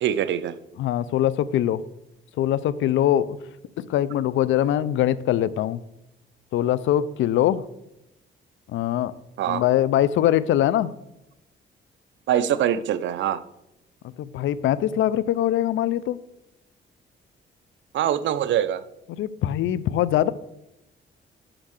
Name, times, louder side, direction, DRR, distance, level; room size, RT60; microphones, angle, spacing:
voice 1, 0.0-0.5 9.4-9.6 12.3-13.4 17.9-18.8, right 10 dB, 70° right, 14 dB, 0.6 m, -23 dB
voice 2, 0.8-1.8 2.4-3.4 3.9-5.8 6.5-7.6 8.7-9.1 9.5-10.9 14.2-16.2 19.2-20.3, left 12 dB, 75° left, 17 dB, 0.5 m, -22 dB
6.5 x 5.9 x 6.4 m, 0.87 s
cardioid pair, 90°, 20 cm